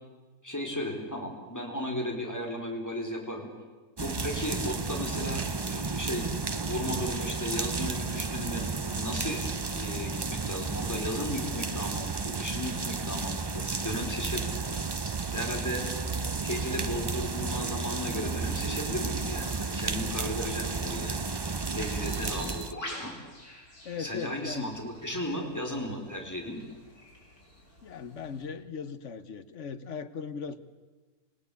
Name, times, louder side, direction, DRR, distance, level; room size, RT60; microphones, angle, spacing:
voice 1, 0.4-3.5 4.0-6.3 6.6-14.5 15.0-15.8 16.4-21.3 21.7-23.1 23.9-26.6, left 1 dB, 10° left, 1 dB, 4.1 m, -35 dB
sound 1, 4.0-22.7, right 4 dB, 30° right, 0.4 m, -32 dB
Bird, 22.0-28.5, left 1 dB, 80° left, 6.0 m, -47 dB
voice 2, 23.8-24.7 27.8-30.6, left 6 dB, 55° left, 12 dB, 1.3 m, -38 dB
27.5 x 17.5 x 8.3 m, 1.3 s
omnidirectional pair, 1.5 m